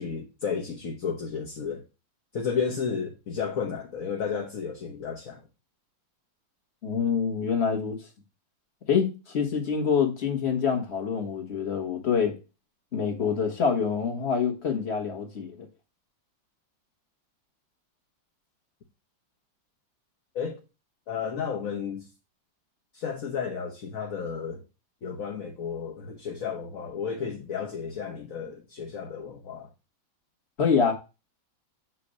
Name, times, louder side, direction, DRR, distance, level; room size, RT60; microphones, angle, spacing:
voice 1, 0.0-1.8 2.3-5.4 20.3-20.6 21.1-22.1 22.9-24.6 25.0-29.7, left 6 dB, 50° left, 1.3 m, -32 dB
voice 2, 6.8-8.0 8.9-12.4 12.9-15.7 30.6-30.9, left 6 dB, 35° left, 1.7 m, -26 dB
8.4 x 2.9 x 6.3 m
omnidirectional pair, 2.1 m